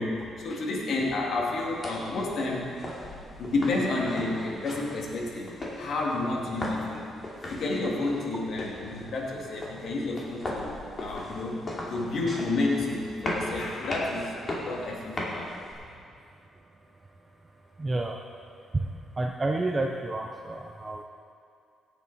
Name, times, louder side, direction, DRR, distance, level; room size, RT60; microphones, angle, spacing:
voice 1, 0.0-2.8 3.0-7.2 7.4-14.4 14.6-15.9, left 2 dB, 65° left, -2 dB, 2.3 m, -30 dB
sound 1, 1.5-15.7, left 1 dB, 35° left, 2.6 m, -38 dB
voice 2, 17.8-18.2 18.7-18.9 19.2-21.0, right 2 dB, 25° right, 1 dB, 0.7 m, -29 dB
17.0 x 8.2 x 4.2 m, 2.4 s
cardioid pair, 90°, 0 cm